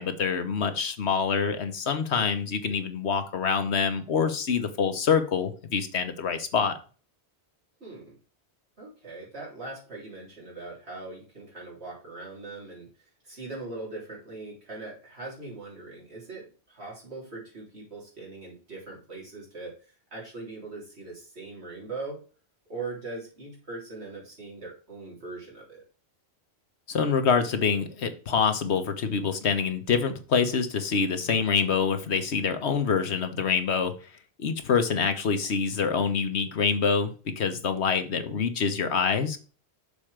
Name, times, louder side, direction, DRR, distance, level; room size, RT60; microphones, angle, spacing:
voice 1, 0.0-6.8 26.9-33.9 34.4-39.4, left 6 dB, 85° left, 8 dB, 1.3 m, -26 dB
voice 2, 7.8-8.1 8.8-12.9 13.2-19.7 20.1-22.2 22.7-25.8, right 3 dB, 75° right, -4 dB, 3.8 m, -40 dB
7.0 x 4.4 x 4.9 m, 0.37 s
omnidirectional pair, 1.1 m